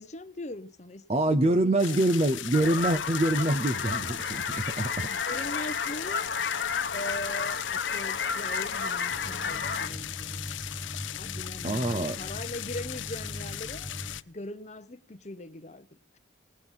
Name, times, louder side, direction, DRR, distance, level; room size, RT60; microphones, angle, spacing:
voice 1, 0.0-2.1 5.0-6.3 6.9-10.5 11.2-13.9 14.3-16.2, left 1 dB, 35° left, 0.9 m, -41 dB
voice 2, 1.1-5.1 11.6-12.2, right 1 dB, 35° right, 0.6 m, -25 dB
sound 1, 1.8-14.2, left 13 dB, 90° left, 0.6 m, -38 dB
sound 2, 2.5-9.9, left 5 dB, 70° left, 1.0 m, -32 dB
sound 3, 9.1-14.2, equal, 15° right, 1.4 m, -41 dB
18.5 x 7.8 x 5.6 m
head